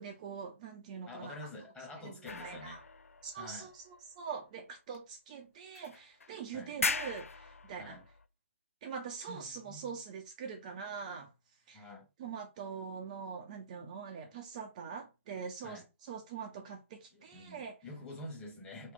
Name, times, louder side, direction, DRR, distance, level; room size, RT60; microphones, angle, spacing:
voice 1, 0.0-1.4 2.0-2.1 2.4-2.8 3.2-8.0 8.8-11.3 11.7-11.8 12.2-17.8, right 6 dB, 30° right, 0.5 m, -43 dB
voice 2, 1.1-2.8 3.3-3.7 6.5-6.8 7.8-8.1 9.3-10.0 11.7-12.1 15.6-15.9 17.1-18.9, left 2 dB, 10° left, 1.1 m, -47 dB
sound 1, 2.3-4.2 4.9-5.0 5.7-6.3 6.7-8.3, left 4 dB, 80° left, 0.4 m, -39 dB
2.9 x 2.3 x 3.8 m
figure-of-eight pair, 135°, 7 cm